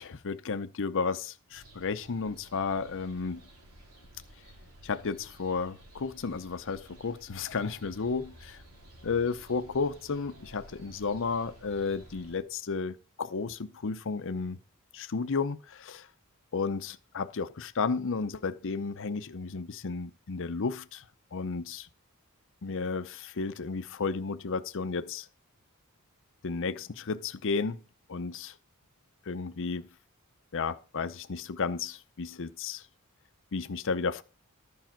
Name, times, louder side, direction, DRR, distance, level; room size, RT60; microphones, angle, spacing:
voice 1, 0.0-3.4 4.8-8.6 9.0-14.6 14.9-16.1 16.5-21.0 21.3-21.9 22.6-25.3 26.4-27.8 28.1-28.5 29.3-29.9 30.5-32.8 33.5-34.2, left 4 dB, 60° left, 0.7 m, -33 dB
sound 1, 1.5-12.4, right 1 dB, 80° right, 3.2 m, -53 dB
11.5 x 5.3 x 5.9 m
head